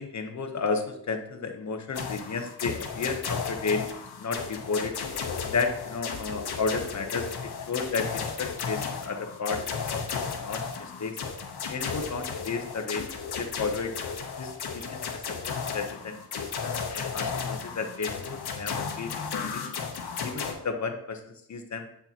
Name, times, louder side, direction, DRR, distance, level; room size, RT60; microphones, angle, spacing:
voice 1, 0.0-3.9 4.2-4.9 5.4-8.1 8.4-11.2 11.7-13.1 13.4-13.9 14.4-15.0 15.5-19.7 20.2-21.9, left 4 dB, 45° left, 5 dB, 1.0 m, -32 dB
sound 1, 1.9-20.5, left 6 dB, 75° left, 1.1 m, -34 dB
8.3 x 6.7 x 2.9 m, 0.71 s
wide cardioid pair, 110°, 40 cm